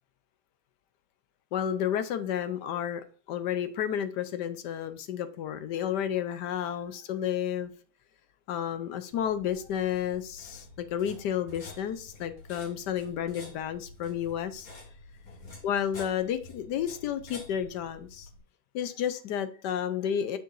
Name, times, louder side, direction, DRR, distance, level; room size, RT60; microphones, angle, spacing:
voice 1, 1.5-7.7 8.5-14.7 15.6-18.3 18.7-20.4, left 9 dB, 75° left, 1.2 m, -31 dB
sound 1, 9.1-18.4, left 2 dB, 50° left, 2.1 m, -49 dB
6.8 x 6.4 x 2.5 m
omnidirectional pair, 2.0 m